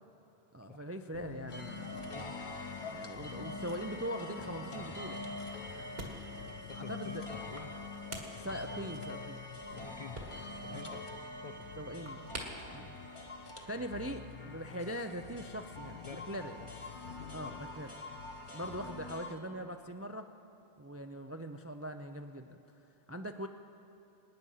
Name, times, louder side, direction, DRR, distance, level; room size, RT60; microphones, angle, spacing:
voice 1, 0.5-1.9 2.8-5.2 6.7-7.3 8.4-9.4 10.7-10.8 11.8-12.3 12.7-12.9 13.7-16.6 17.3-17.9 18.5-20.3 20.8-22.6 23.1-23.5, equal, 25° right, 7 dB, 0.3 m, -41 dB
sound 1, 1.1-19.1, left 9 dB, 85° left, 0.8 m, -51 dB
sound 2, 1.5-19.4, left 2 dB, 30° left, 1.1 m, -45 dB
sound 3, 5.3-14.0, right 2 dB, 60° right, 2.1 m, -50 dB
voice 2, 6.5-7.8 8.3-9.1 9.7-11.9 13.8-13.9 15.9-16.3 16.6-16.7 17.5-17.6, left 6 dB, 50° left, 7 dB, 0.5 m, -50 dB
26.5 x 9.8 x 5.6 m, 2.8 s
omnidirectional pair, 1.1 m